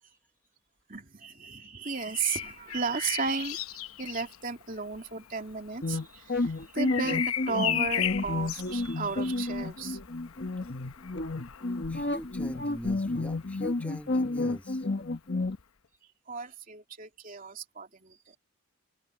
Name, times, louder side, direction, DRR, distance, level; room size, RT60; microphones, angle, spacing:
voice 1, 0.9-3.6 4.0-10.0 16.3-18.4, right 4 dB, 40° right, 2.8 m, -34 dB
Bird vocalization bird call bird song, 1.9-13.7 15.4-15.6, left 11 dB, 80° left, 0.9 m, -37 dB
sound 1, 5.8-15.6, left 2 dB, 50° left, 1.3 m, -31 dB
voice 2, 11.9-14.9, equal, 5° left, 1.3 m, -41 dB
head